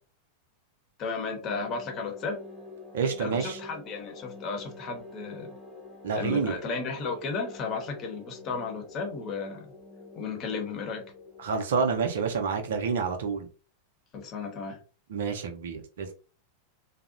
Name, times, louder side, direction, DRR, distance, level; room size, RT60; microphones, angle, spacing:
voice 1, 1.0-2.4 3.2-5.5 6.1-9.7 10.2-11.1 14.1-14.8, left 4 dB, 35° left, 3 dB, 0.8 m, -34 dB
sound 1, 1.4-13.2, left 3 dB, ahead, 1.1 m, -47 dB
voice 2, 2.9-3.6 6.0-6.6 11.4-13.5 15.1-16.1, right 5 dB, 60° right, 5 dB, 0.5 m, -28 dB
2.7 x 2.0 x 2.5 m, 0.35 s
figure-of-eight pair, 90°, 0 cm